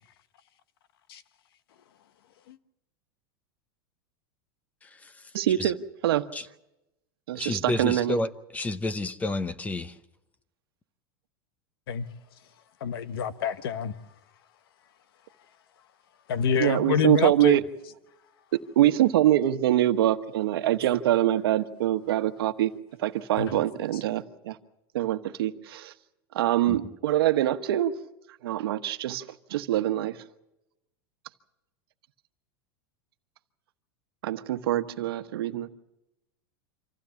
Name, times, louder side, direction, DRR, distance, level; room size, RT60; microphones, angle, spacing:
voice 1, 5.3-5.8 6.0-6.2 7.3-8.2 16.6-17.6 18.7-22.7 23.0-24.6 24.9-25.9 26.3-27.9 28.4-29.2 29.5-30.2 34.2-35.7, right 13 dB, 85° right, 1.2 m, -24 dB
voice 2, 7.3-9.9 26.7-26.8, left 2 dB, 10° left, 0.8 m, -30 dB
voice 3, 12.8-13.9 16.3-17.6 23.4-23.6, left 7 dB, 85° left, 1.3 m, -27 dB
26.0 x 15.5 x 7.2 m
supercardioid pair, 150°, 12 cm